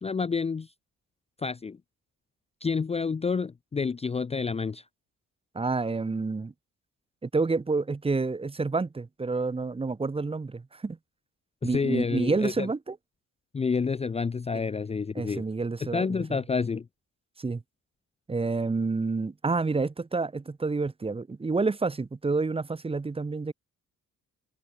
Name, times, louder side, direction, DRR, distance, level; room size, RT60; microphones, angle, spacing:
voice 1, 0.0-0.7 1.4-1.8 2.6-4.8 11.6-12.7 13.5-15.4 15.8-16.9, left 5 dB, 20° left, 0.5 m, -29 dB
voice 2, 5.5-6.5 7.2-11.0 11.6-13.0 15.1-16.4 17.4-17.6 18.3-23.5, right 3 dB, 20° right, 1.0 m, -29 dB
cardioid pair, 105°, 30 cm